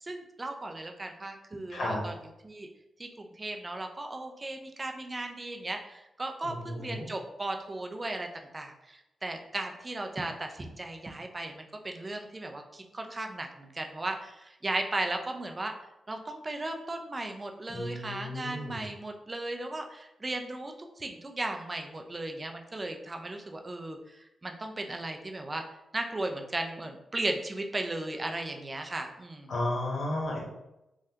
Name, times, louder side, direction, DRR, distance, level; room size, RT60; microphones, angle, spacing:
voice 1, 0.0-2.1 2.4-2.7 3.0-8.3 8.5-15.7 16.1-25.6 25.9-29.5, right 2 dB, 35° right, 4 dB, 0.5 m, -36 dB
voice 2, 6.4-7.1 17.7-18.8 29.5-30.4, left 1 dB, 60° left, -2 dB, 1.0 m, -33 dB
3.3 x 2.3 x 2.8 m, 0.92 s
supercardioid pair, 45°, 0 cm